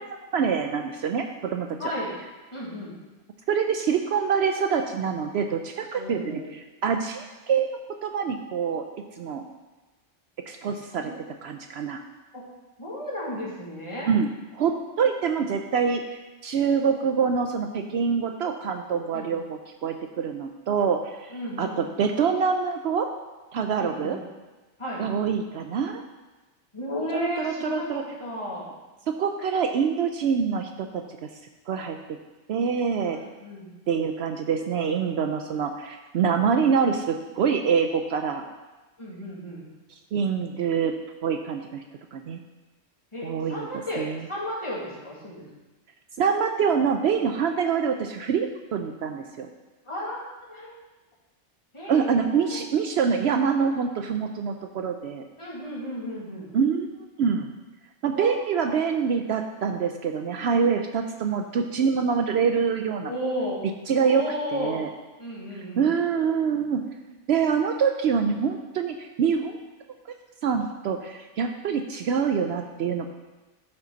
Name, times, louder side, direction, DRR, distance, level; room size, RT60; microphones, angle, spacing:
voice 1, 0.0-1.7 3.5-6.4 6.8-7.7 8.0-8.8 9.2-9.4 10.5-11.1 11.4-12.0 14.1-23.1 23.5-24.2 25.0-26.0 27.1-28.0 29.2-30.9 31.2-31.3 31.7-32.0 32.5-33.2 33.9-38.4 40.1-40.9 41.2-41.8 42.1-42.4 43.2-43.7 44.0-44.1 46.2-49.5 51.9-55.2 56.5-56.9 57.2-57.5 58.0-63.1 63.9-64.2 64.5-64.9 65.8-66.8 67.3-69.6 70.4-73.1, right 6 dB, 70° right, 5 dB, 0.8 m, -25 dB
voice 2, 1.8-2.1 2.5-3.0 5.9-6.5 11.0-11.2 12.3-12.4 12.8-14.1 19.1-19.3 21.3-21.8 23.7-24.2 24.8-25.0 26.7-28.7 33.1-33.7 39.0-39.6 43.1-45.4 49.9-50.7 51.7-52.6 55.4-56.5 58.1-58.3 63.0-63.6 64.0-64.8 65.2-65.9, left 1 dB, 25° left, -7 dB, 2.4 m, -33 dB
12.5 x 5.6 x 3.9 m, 1.2 s
omnidirectional pair, 1.2 m